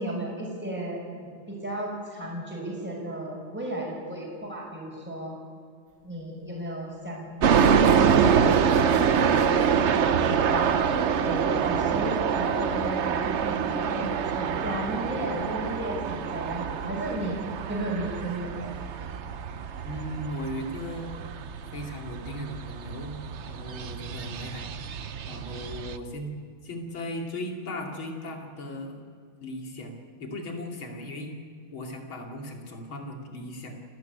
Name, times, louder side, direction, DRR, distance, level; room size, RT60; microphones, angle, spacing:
voice 1, 0.0-5.3 6.0-7.3 7.6-10.8 11.2-17.4 17.7-18.7, right 1 dB, 5° right, -3 dB, 5.8 m, -34 dB
sound 1, 6.9-7.0 7.4-10.3, right 1 dB, 40° right, 3.3 m, -42 dB
sound 2, 7.4-26.0, right 7 dB, 75° right, 0.6 m, -26 dB
voice 2, 19.8-21.1 21.7-23.1 23.4-24.7 25.2-26.3 26.6-29.0 29.4-31.3 31.7-33.7, left 1 dB, 80° left, 1 dB, 3.5 m, -37 dB
28.5 x 13.0 x 9.4 m, 2.1 s
omnidirectional pair, 2.2 m